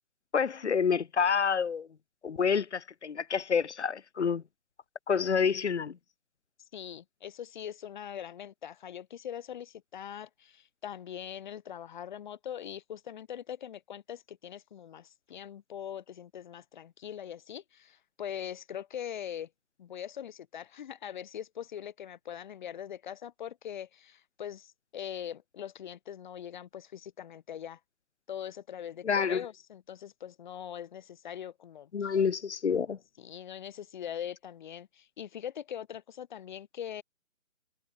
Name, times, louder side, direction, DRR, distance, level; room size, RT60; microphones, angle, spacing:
voice 1, 0.3-1.9 2.2-4.4 5.1-6.0 29.0-29.4 31.9-33.0, left 6 dB, 55° left, 1.2 m, -28 dB
voice 2, 6.7-19.5 19.8-27.8 28.3-32.2 33.2-37.0, left 9 dB, 35° left, 6.7 m, -42 dB
figure-of-eight pair, 150°, 41 cm